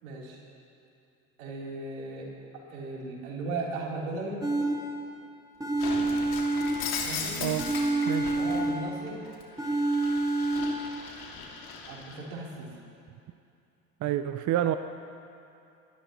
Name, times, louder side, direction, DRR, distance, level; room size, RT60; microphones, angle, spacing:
voice 1, 0.0-0.4 1.4-2.3 2.7-4.4 7.0-7.4 8.3-9.2 11.9-12.7, right 3 dB, 85° right, -4 dB, 3.8 m, -36 dB
sound 1, 4.4-5.2 5.6-7.2 7.6-9.2 9.6-11.0, right 2 dB, 10° right, 1.9 m, -28 dB
Shatter, 5.8-8.6 9.1-12.2, left 5 dB, 60° left, 2.6 m, -37 dB
voice 2, 8.1-8.4 14.0-14.8, right 12 dB, 45° right, 10 dB, 0.6 m, -28 dB
26.5 x 12.5 x 3.1 m, 2.6 s
hypercardioid pair, 75°, 42 cm